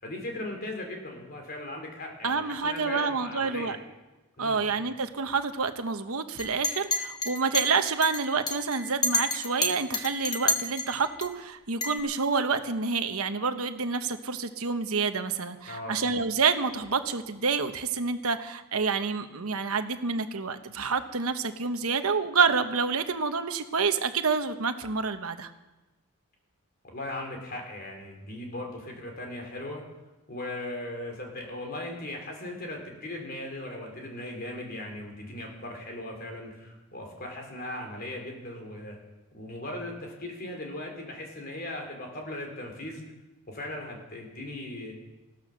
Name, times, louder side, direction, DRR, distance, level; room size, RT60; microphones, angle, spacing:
voice 1, 0.0-3.8 4.4-4.7 15.7-15.9 26.9-29.8 30.3-39.0 39.3-43.0 43.5-44.9, left 1 dB, 45° left, 2 dB, 3.6 m, -38 dB
voice 2, 2.2-3.8 4.4-25.5, right 5 dB, 75° right, 8 dB, 1.1 m, -28 dB
Chink clink, 6.4-11.3 11.8-12.0, left 3 dB, 20° left, 1.1 m, -29 dB
16.0 x 13.0 x 6.5 m, 1.1 s
head